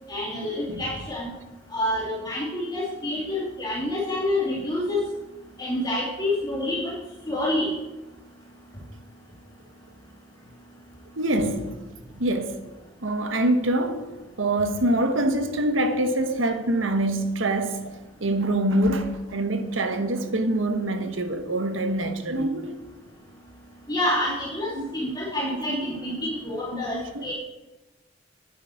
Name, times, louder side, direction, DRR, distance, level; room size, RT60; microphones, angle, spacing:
voice 1, 0.1-1.3 1.7-5.0 5.6-6.9 7.3-7.7 23.9-27.3, left 1 dB, 20° left, 2.4 m, -28 dB
voice 2, 11.2-11.8 12.1-12.6 13.0-14.1 14.4-22.7 24.3-24.4 24.7-24.9 25.4-26.4 26.7-27.3, right 1 dB, 80° right, 1.4 m, -25 dB
9.6 x 8.8 x 7.7 m
head